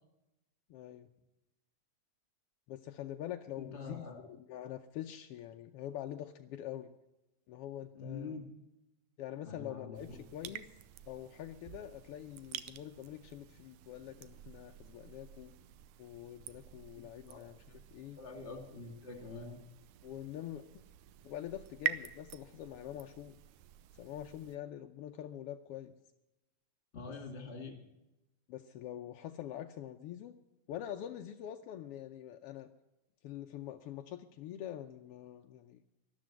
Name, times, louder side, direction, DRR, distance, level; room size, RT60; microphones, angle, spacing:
voice 1, 0.7-1.1 2.7-6.9 7.5-8.4 9.2-10.7 11.1-15.5 16.0-18.2 20.0-20.6 21.2-23.4 23.9-25.9 28.5-30.4 30.7-32.7 33.2-35.8, left 11 dB, 80° left, 6 dB, 1.3 m, -45 dB
voice 2, 3.6-4.2 7.9-8.5 9.4-10.5 16.9-17.4 17.9-19.6 26.9-27.9, left 4 dB, 25° left, 5 dB, 2.3 m, -46 dB
sound 1, 9.9-24.6, right 11 dB, 85° right, 2.1 m, -47 dB
13.0 x 12.0 x 7.5 m, 0.94 s
omnidirectional pair, 3.3 m